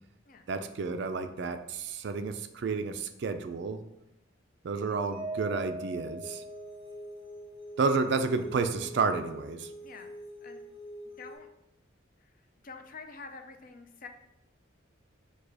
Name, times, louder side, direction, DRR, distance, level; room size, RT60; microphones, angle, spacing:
voice 1, 0.5-3.8 4.6-6.4 7.8-9.7, right 4 dB, 60° right, 8 dB, 0.3 m, -31 dB
Mallet percussion, 5.1-7.4, right 1 dB, 5° right, 0.5 m, -40 dB
sound 1, 6.2-11.4, equal, 20° left, 1.2 m, -46 dB
voice 2, 9.8-10.6 11.2-11.5 12.2-12.3 12.6-14.1, left 4 dB, 40° left, 5 dB, 0.4 m, -47 dB
4.8 x 2.3 x 4.7 m, 0.85 s
head